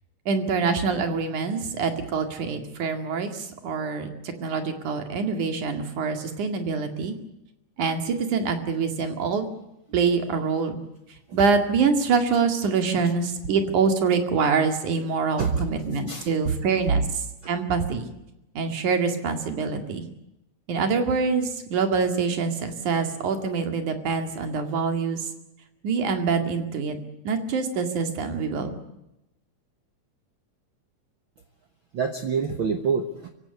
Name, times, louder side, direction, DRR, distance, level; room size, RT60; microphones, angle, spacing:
voice 1, 0.3-7.1 7.8-9.5 9.9-10.8 11.3-18.1 18.6-20.0 20.7-25.3 25.8-27.0 27.3-28.8, right 5 dB, 70° right, 7 dB, 3.7 m, -25 dB
voice 2, 16.1-16.5 16.9-17.0 31.9-33.3, right 6 dB, 50° right, 6 dB, 1.7 m, -26 dB
25.5 x 16.5 x 9.6 m, 0.89 s
omnidirectional pair, 3.6 m